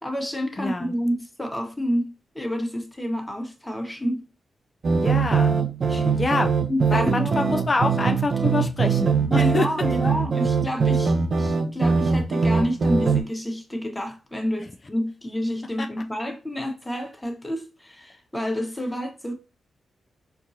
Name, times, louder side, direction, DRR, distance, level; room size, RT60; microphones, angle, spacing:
voice 1, 0.0-4.2 5.9-6.1 6.7-7.4 9.3-19.3, equal, 10° left, 1.2 m, -29 dB
voice 2, 0.6-0.9 5.0-5.6 6.2-6.5 6.8-9.9 15.8-15.9, left 3 dB, 40° left, 0.5 m, -26 dB
sound 1, 4.8-13.2, right 5 dB, 60° right, 0.6 m, -22 dB
4.5 x 2.2 x 2.7 m
supercardioid pair, 45°, 0 cm